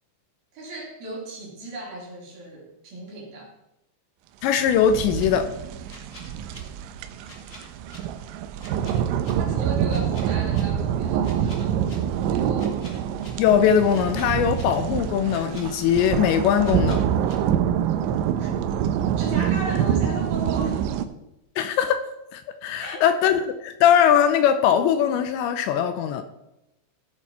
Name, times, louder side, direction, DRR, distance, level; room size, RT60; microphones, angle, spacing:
voice 1, 0.5-3.5 9.4-11.8 12.2-12.7 18.4-18.5 19.2-20.9 22.8-23.0, right 2 dB, 55° right, -2 dB, 4.1 m, -35 dB
voice 2, 4.4-5.5 13.4-17.0 21.6-22.0 22.3-26.2, left 9 dB, 80° left, 9 dB, 2.8 m, -20 dB
sound 1, 4.6-21.1, right 9 dB, 85° right, 3.2 m, -26 dB
sound 2, 5.2-5.3 5.9-6.6 7.2-8.0 8.6-9.3 9.9-10.6 11.2-11.9 12.6-13.3 13.9-14.6 15.3-16.0 16.6-17.3, left 2 dB, 30° left, 1.6 m, -46 dB
16.0 x 7.1 x 4.3 m, 0.88 s
omnidirectional pair, 5.4 m